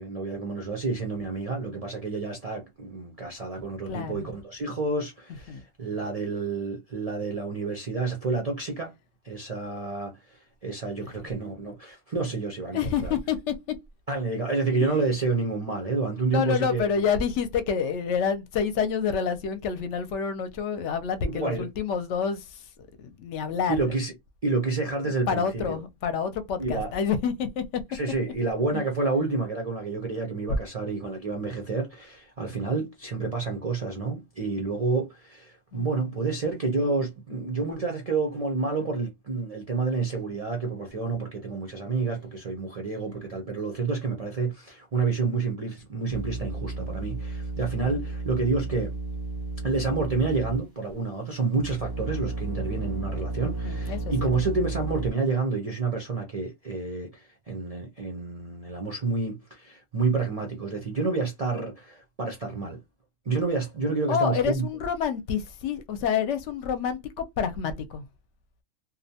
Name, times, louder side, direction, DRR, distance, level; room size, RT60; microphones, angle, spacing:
voice 1, 0.0-8.9 9.2-13.1 14.1-17.0 21.3-21.7 23.7-24.1 24.4-25.8 26.6-26.9 27.9-48.9 49.6-62.8 63.3-64.6, right 4 dB, 65° right, 0.3 m, -29 dB
voice 2, 3.9-4.4 5.5-5.6 11.0-11.1 12.7-13.5 16.3-22.7 23.0-23.8 25.3-27.8 28.7-28.8 35.7-36.2 53.4-54.3 64.1-68.0, left 7 dB, 65° left, 0.8 m, -28 dB
sound 1, 46.1-50.9 51.5-55.1, right 3 dB, 30° left, 0.4 m, -33 dB
2.6 x 2.1 x 2.7 m
omnidirectional pair, 1.5 m